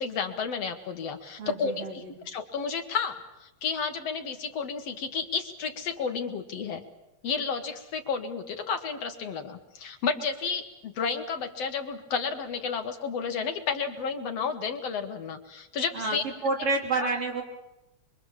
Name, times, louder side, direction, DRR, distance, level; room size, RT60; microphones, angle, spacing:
voice 1, 0.0-6.8 7.2-16.2 17.0-17.1, left 5 dB, 60° left, 6 dB, 2.3 m, -32 dB
voice 2, 1.4-2.1 15.9-17.4, right 3 dB, 50° right, 1 dB, 4.6 m, -29 dB
24.5 x 24.5 x 7.3 m, 0.95 s
omnidirectional pair, 3.3 m